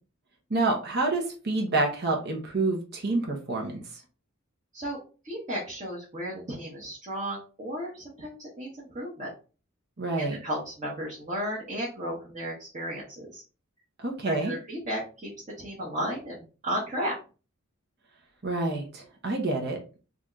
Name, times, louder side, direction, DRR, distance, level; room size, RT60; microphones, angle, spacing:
voice 1, 0.5-4.0 10.0-10.4 14.0-14.5 18.4-19.8, right 2 dB, 50° right, 2 dB, 0.9 m, -28 dB
voice 2, 5.2-9.3 10.2-13.4 14.3-15.3 15.6-17.1, equal, 35° right, -6 dB, 1.2 m, -34 dB
4.0 x 2.5 x 3.0 m, 0.35 s
head